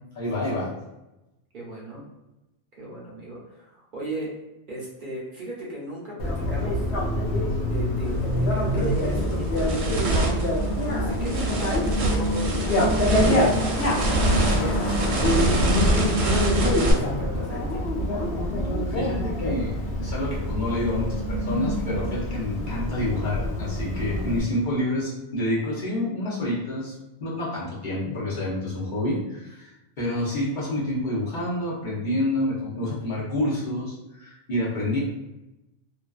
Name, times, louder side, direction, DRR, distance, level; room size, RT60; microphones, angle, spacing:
voice 1, 0.1-0.7 18.9-26.9 27.2-35.0, left 1 dB, 50° left, -6 dB, 0.8 m, -28 dB
voice 2, 1.5-2.1 2.8-4.4 4.7-6.9 7.6-10.4 10.9-13.4 13.7-13.8 14.6-15.7 16.9-18.0, right 1 dB, 55° right, -4 dB, 0.7 m, -37 dB
Bicycle, 6.2-24.4, left 1 dB, 90° left, 0.9 m, -25 dB
sound 1, 8.1-8.2 8.7-16.9, right 2 dB, 85° right, 0.9 m, -26 dB
2.5 x 2.2 x 2.3 m, 0.96 s
omnidirectional pair, 1.1 m